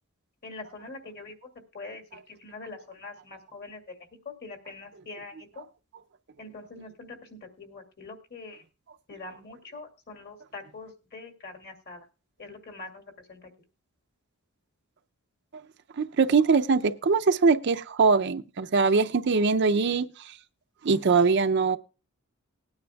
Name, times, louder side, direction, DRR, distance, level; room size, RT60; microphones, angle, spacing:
voice 1, 0.4-4.0 4.2-5.6 6.4-8.6 9.1-12.1 12.4-13.0 13.3-13.5, left 3 dB, 50° left, 2.3 m, -44 dB
voice 2, 16.0-20.1 20.8-21.8, right 4 dB, 55° right, 0.5 m, -22 dB
19.5 x 9.5 x 2.3 m
head